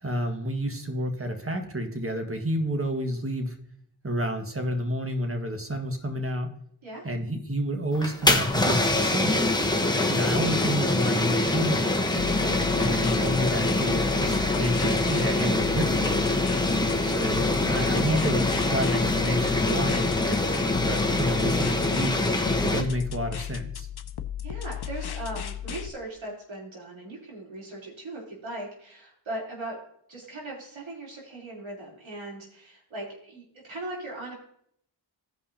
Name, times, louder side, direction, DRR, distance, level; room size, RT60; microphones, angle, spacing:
voice 1, 0.0-3.6 4.0-6.5 7.0-9.4 10.1-12.1 12.8-16.3 17.0-22.2 22.6-23.9, equal, 30° right, 5 dB, 1.7 m, -30 dB
sound 1, 7.9-22.8, left 2 dB, 10° left, 1.0 m, -24 dB
sound 2, 12.2-25.9, left 10 dB, 55° left, 0.7 m, -35 dB
voice 2, 12.8-13.6 16.7-17.2 24.4-29.8 30.1-34.3, right 2 dB, 85° right, -3 dB, 3.5 m, -39 dB
16.5 x 5.4 x 2.8 m, 0.68 s
cardioid pair, 55°, 46 cm